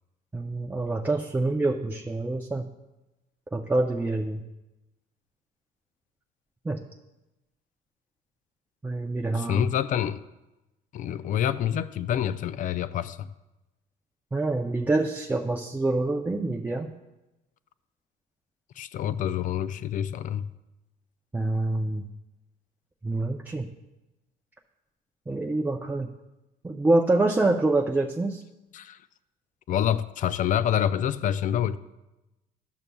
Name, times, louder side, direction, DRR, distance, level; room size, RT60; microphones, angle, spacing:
voice 1, 0.3-2.6 3.5-4.4 6.7-6.8 8.8-9.6 14.3-16.9 21.3-22.0 23.0-23.7 25.3-26.1 26.6-28.4, right 2 dB, 10° right, 0 dB, 0.5 m, -26 dB
voice 2, 9.4-10.2 10.9-13.3 18.8-20.5 28.7-29.0 29.7-31.8, left 10 dB, 50° left, 14 dB, 0.4 m, -27 dB
12.5 x 6.7 x 2.3 m, 1.0 s
cardioid pair, 110°, 17 cm